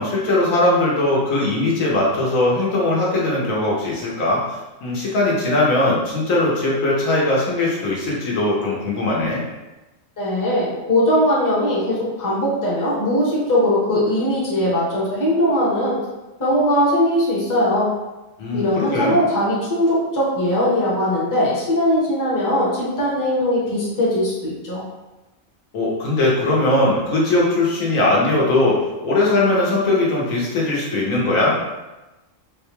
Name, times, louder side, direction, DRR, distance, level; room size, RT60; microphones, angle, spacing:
voice 1, 0.0-9.4 18.4-19.2 25.7-31.6, left 2 dB, 80° left, -4 dB, 1.3 m, -20 dB
voice 2, 10.2-16.0 16.4-17.9 18.5-24.8, equal, 20° left, -6 dB, 0.7 m, -20 dB
4.2 x 2.3 x 3.0 m, 1.1 s
omnidirectional pair, 1.4 m